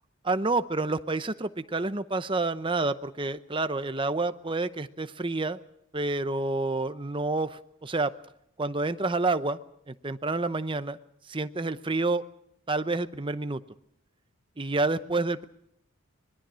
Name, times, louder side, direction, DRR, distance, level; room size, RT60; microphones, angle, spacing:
voice 1, 0.3-5.6 5.9-8.1 8.6-9.6 9.9-11.0 11.3-12.2 12.7-13.6 14.6-15.5, right 3 dB, 25° right, 11 dB, 0.8 m, -28 dB
25.0 x 21.5 x 6.3 m, 0.75 s
head